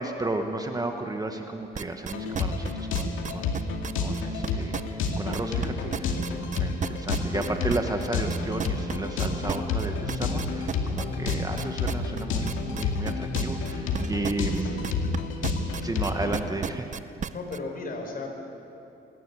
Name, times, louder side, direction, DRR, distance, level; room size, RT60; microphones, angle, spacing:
voice 1, 0.0-3.6 4.0-14.8 15.8-16.9, right 2 dB, 20° right, 4 dB, 1.4 m, -33 dB
sound 1, 1.7-5.7 5.9-15.2 15.4-17.6, right 7 dB, 40° right, 0.7 m, -33 dB
sound 2, 2.1-16.5, left 4 dB, 85° left, 2.2 m, -30 dB
voice 2, 14.5-14.9 17.3-18.3, left 3 dB, 45° left, 2 dB, 5.1 m, -36 dB
26.0 x 11.0 x 9.8 m, 2.8 s
cardioid pair, 90°, 20 cm